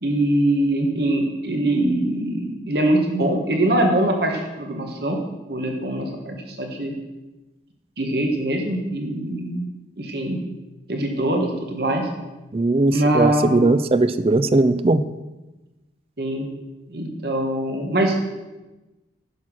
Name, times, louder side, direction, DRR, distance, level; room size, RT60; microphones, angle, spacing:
voice 1, 0.0-5.2 5.5-6.9 8.0-9.7 10.0-10.4 10.9-12.1 12.9-13.6 16.2-16.4 16.9-18.2, right 1 dB, 55° right, 2 dB, 1.4 m, -23 dB
voice 2, 12.5-15.0, right 2 dB, 30° right, 12 dB, 0.4 m, -19 dB
10.5 x 5.8 x 6.3 m, 1.1 s
head